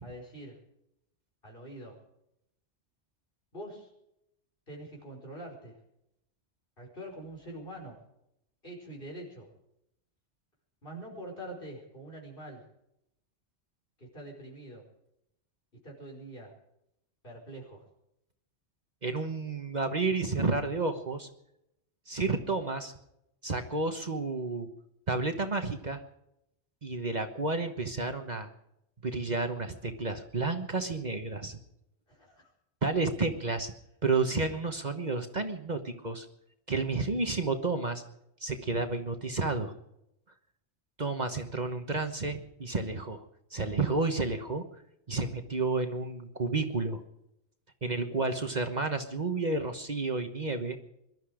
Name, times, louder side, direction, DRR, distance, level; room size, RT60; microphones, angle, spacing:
voice 1, 0.0-0.6 1.4-2.0 3.5-3.9 4.7-5.8 6.8-8.0 8.6-9.5 10.8-12.6 14.0-14.8 15.8-16.5 17.2-17.8 32.1-32.5, right 1 dB, 55° left, 0 dB, 5.3 m, -44 dB
voice 2, 19.0-21.3 22.1-22.9 23.4-24.7 25.1-26.0 26.8-28.5 29.0-31.6 32.8-33.7 34.0-36.3 36.7-38.0 38.4-39.7 41.0-43.2 43.5-44.6 45.1-47.0 47.8-50.8, right 3 dB, 40° right, 6 dB, 1.3 m, -31 dB
22.5 x 12.5 x 5.0 m, 0.80 s
omnidirectional pair, 1.1 m